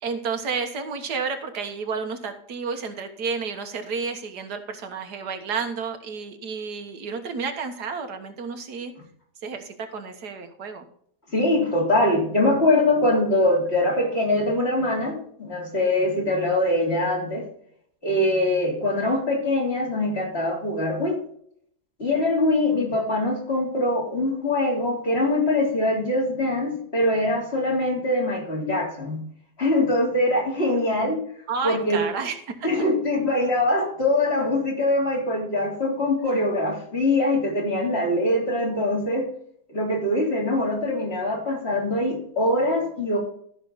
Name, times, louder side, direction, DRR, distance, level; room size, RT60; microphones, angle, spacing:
voice 1, 0.0-8.9 9.4-10.9 31.5-32.7, right 5 dB, 90° right, 6 dB, 1.9 m, -31 dB
voice 2, 11.3-17.5 18.0-21.2 22.0-29.3 29.6-31.2 31.6-32.0 32.6-39.3 39.7-43.2, left 1 dB, 40° left, -2 dB, 3.6 m, -23 dB
14.0 x 6.3 x 4.0 m, 0.65 s
omnidirectional pair, 1.7 m